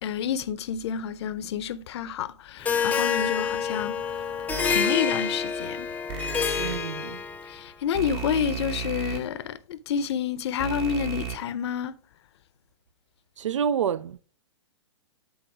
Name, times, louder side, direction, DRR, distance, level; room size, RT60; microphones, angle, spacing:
voice 1, 0.0-4.0 4.7-5.9 7.4-12.0, left 8 dB, 60° left, 0.6 m, -29 dB
Harp, 2.6-7.7, left 6 dB, 10° left, 0.6 m, -28 dB
sound 1, 4.5-4.8 6.1-6.7 7.9-9.2 10.6-11.3, right 7 dB, 50° right, 1.5 m, -33 dB
voice 2, 6.6-7.2 13.4-14.2, right 8 dB, 85° right, 0.4 m, -28 dB
8.0 x 4.0 x 4.8 m
hypercardioid pair, 120°, 15 cm